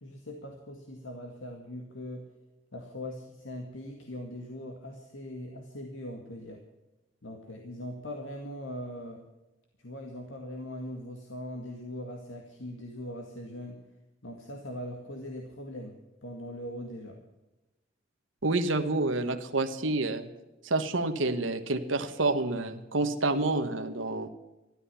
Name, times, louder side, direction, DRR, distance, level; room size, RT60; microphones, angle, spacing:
voice 1, 0.0-2.3 2.7-6.6 7.2-9.2 9.8-13.8 14.2-16.0 16.2-17.2, left 1 dB, 80° left, 2 dB, 2.1 m, -41 dB
voice 2, 18.4-20.3 20.6-24.3, right 2 dB, 85° right, 7 dB, 1.4 m, -28 dB
14.0 x 12.0 x 7.0 m, 1.0 s
head